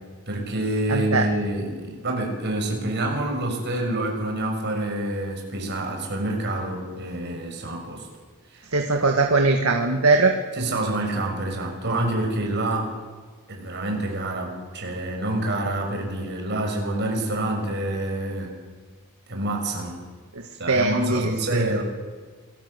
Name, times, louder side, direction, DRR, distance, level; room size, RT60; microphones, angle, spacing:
voice 1, 0.3-8.1 8.5-8.6 10.5-12.9 13.5-18.6 19.3-20.0 20.6-21.8, right 1 dB, 50° right, 2 dB, 6.4 m, -27 dB
voice 2, 0.9-1.2 8.7-10.3 20.7-21.7, right 3 dB, 75° right, 3 dB, 2.0 m, -21 dB
27.5 x 19.0 x 8.0 m, 1.5 s
head